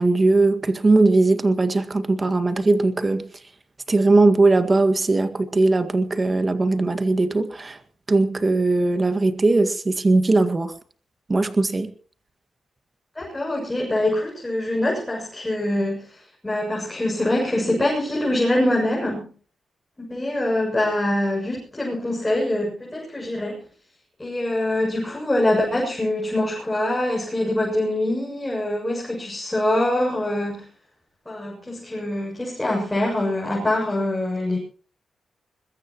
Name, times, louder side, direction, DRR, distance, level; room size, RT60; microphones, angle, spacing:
voice 1, 0.0-3.2 3.9-7.8 8.1-10.7 11.3-11.9, right 2 dB, 25° right, 1.9 m, -19 dB
voice 2, 13.2-19.3 20.0-23.6 24.2-30.7 31.3-34.6, left 1 dB, 15° left, 7.1 m, -24 dB
22.0 x 21.0 x 3.0 m
cardioid pair, 110°, 0 cm